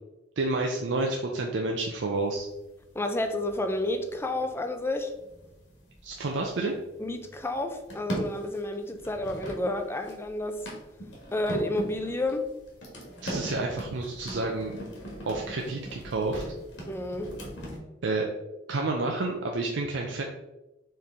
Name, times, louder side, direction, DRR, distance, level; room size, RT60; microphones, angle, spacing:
voice 1, 0.4-2.5 6.0-6.7 13.2-14.7 15.2-16.4 18.0-18.3 18.7-20.2, right 3 dB, 80° right, 0.5 m, -29 dB
sound 1, 2.2-17.8, right 1 dB, 75° left, 1.4 m, -40 dB
voice 2, 2.9-5.1 7.0-10.7 11.3-12.5 16.9-17.4, left 1 dB, 15° left, 0.4 m, -30 dB
4.6 x 3.2 x 3.5 m
head